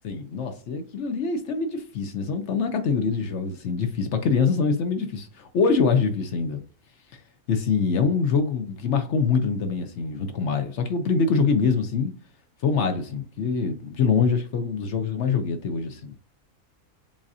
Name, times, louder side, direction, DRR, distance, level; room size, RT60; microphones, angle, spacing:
voice 1, 0.0-6.6 7.1-7.2 7.5-12.1 12.6-16.1, left 5 dB, 60° left, 0.9 m, -24 dB
7.3 x 2.5 x 2.6 m
omnidirectional pair, 1.5 m